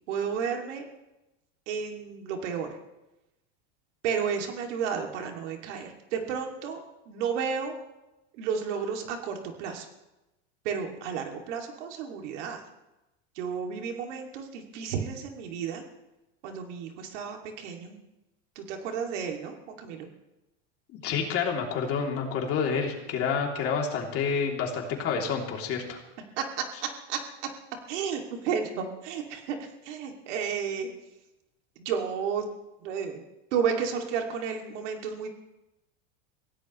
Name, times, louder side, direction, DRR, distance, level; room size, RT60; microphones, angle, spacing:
voice 1, 0.1-0.8 1.7-2.7 4.0-7.7 8.4-9.9 10.6-12.6 13.4-15.8 16.4-18.0 18.6-20.1 26.4-26.6 27.1-27.2 27.9-29.6 29.8-30.9 31.8-32.5 32.8-33.2 33.5-35.3, right 7 dB, 70° right, 3 dB, 2.6 m, -32 dB
voice 2, 20.9-26.0, left 6 dB, 40° left, 1 dB, 3.0 m, -29 dB
24.5 x 16.5 x 3.2 m, 0.98 s
supercardioid pair, 135°, 37 cm